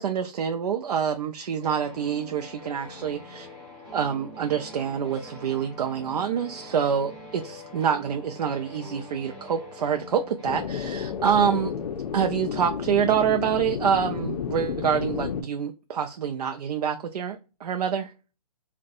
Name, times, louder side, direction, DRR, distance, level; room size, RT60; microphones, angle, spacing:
voice 1, 0.0-3.5 3.9-11.7 12.1-18.1, right 8 dB, 80° right, 0.4 m, -26 dB
sound 1, 1.6-10.5, left 1 dB, 40° right, 1.1 m, -44 dB
sound 2, 10.4-15.4, left 7 dB, 80° left, 0.5 m, -31 dB
2.3 x 2.1 x 2.6 m
hypercardioid pair, 180°, 20 cm